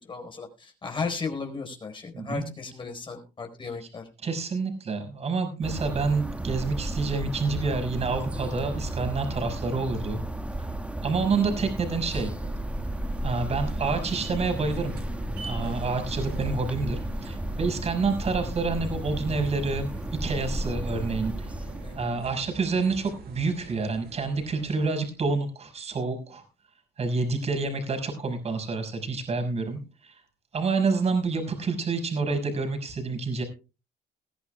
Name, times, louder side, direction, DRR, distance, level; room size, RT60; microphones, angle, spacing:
voice 1, 0.1-4.1 15.6-15.9 21.8-21.9, left 4 dB, 30° left, 4 dB, 4.5 m, -35 dB
voice 2, 2.1-2.4 3.8-3.9 4.2-10.2 10.6-10.7 11.0-12.3 13.2-15.0 15.4-21.5 21.9-26.4 27.0-30.2 30.5-33.4, right 4 dB, 40° right, 4 dB, 5.5 m, -28 dB
sound 1, 5.6-22.3, right 1 dB, 5° right, 1.6 m, -33 dB
sound 2, 11.6-25.1, right 4 dB, 65° right, 5.5 m, -46 dB
21.0 x 14.5 x 2.3 m, 0.31 s
cardioid pair, 110°, 17 cm